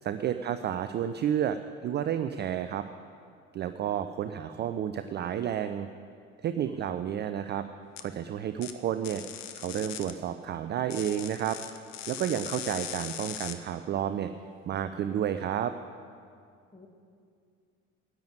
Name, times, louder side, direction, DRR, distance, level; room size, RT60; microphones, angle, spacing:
voice 1, 0.0-2.9 3.5-5.9 6.4-7.7 8.0-9.2 9.6-11.6 12.1-14.3 14.7-15.7, right 10 dB, 25° right, 10 dB, 0.4 m, -31 dB
voice 2, 6.7-7.1 16.7-16.9, left 2 dB, 10° left, 3 dB, 1.7 m, -54 dB
sound 1, 8.0-8.1 8.6-8.7 9.0-10.1 10.9-13.6, left 11 dB, 65° left, 1.0 m, -40 dB
10.5 x 9.0 x 9.0 m, 2.3 s
figure-of-eight pair, 65°, 40 cm